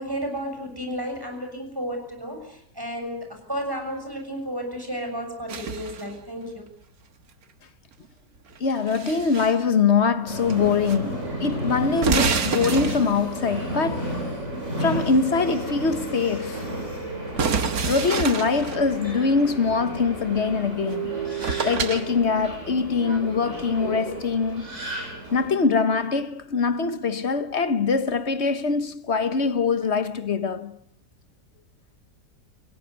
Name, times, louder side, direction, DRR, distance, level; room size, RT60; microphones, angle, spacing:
voice 1, 0.0-6.6, equal, 10° right, 6.9 m, -32 dB
sound 1, 5.5-6.1 8.5-9.6 10.5-11.0 11.2-11.3 11.9-13.3 17.4-18.8 20.9-21.0 21.4-22.1, right 5 dB, 55° right, 1.9 m, -27 dB
voice 2, 8.6-14.1 14.8-16.7 17.9-21.2 21.6-24.7 25.3-30.8, left 5 dB, 45° left, 1.3 m, -23 dB
Subway metro underground, 10.3-25.5, right 1 dB, 40° right, 8.1 m, -32 dB
29.5 x 17.5 x 8.1 m
omnidirectional pair, 1.9 m